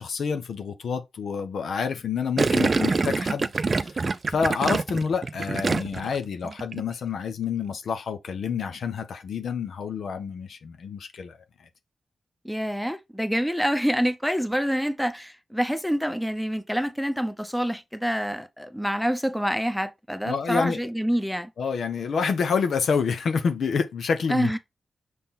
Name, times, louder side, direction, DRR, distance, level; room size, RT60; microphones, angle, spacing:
voice 1, 0.0-3.5 3.8-4.0 4.3-11.4 20.2-20.9 21.6-24.6, left 6 dB, 80° left, 1.0 m, -28 dB
Gurgling, 2.4-6.2 6.4-6.8, right 4 dB, 45° right, 0.6 m, -25 dB
voice 2, 12.4-21.5 24.3-24.6, equal, ahead, 0.9 m, -26 dB
6.6 x 3.7 x 4.3 m
cardioid pair, 60°, 0 cm